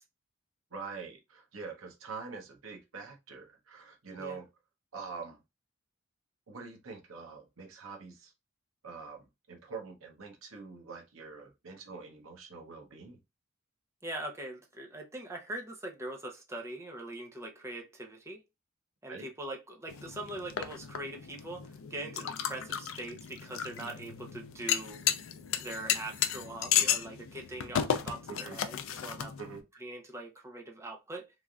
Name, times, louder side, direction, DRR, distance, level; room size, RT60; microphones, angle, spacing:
voice 1, 0.7-4.5 4.9-5.4 6.5-8.3 8.8-9.2 9.5-13.2 19.1-19.3 28.3-28.6 29.4-29.6, right 5 dB, 90° right, 0.8 m, -44 dB
voice 2, 14.0-18.4 19.0-25.0 25.6-28.8 29.0-29.3 29.8-31.3, right 1 dB, 15° right, 0.6 m, -42 dB
sound 1, 19.9-29.6, left 9 dB, 70° left, 0.4 m, -34 dB
3.2 x 2.5 x 2.3 m
head